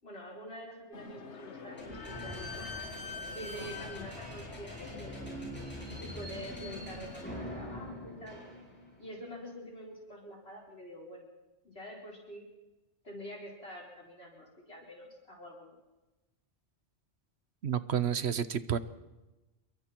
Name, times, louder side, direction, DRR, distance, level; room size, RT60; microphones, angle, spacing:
voice 1, 0.0-2.7 3.3-5.4 6.0-8.4 9.0-11.3 11.6-12.5 13.0-15.7, equal, 65° left, -2 dB, 5.4 m, -46 dB
sound 1, 0.9-7.3, left 4 dB, 90° left, 1.7 m, -47 dB
Slam / Squeak, 1.8-9.0, left 1 dB, 10° left, 7.4 m, -43 dB
voice 2, 17.6-18.8, right 8 dB, 70° right, 14 dB, 1.1 m, -30 dB
28.0 x 22.5 x 4.6 m, 1.1 s
omnidirectional pair, 1.1 m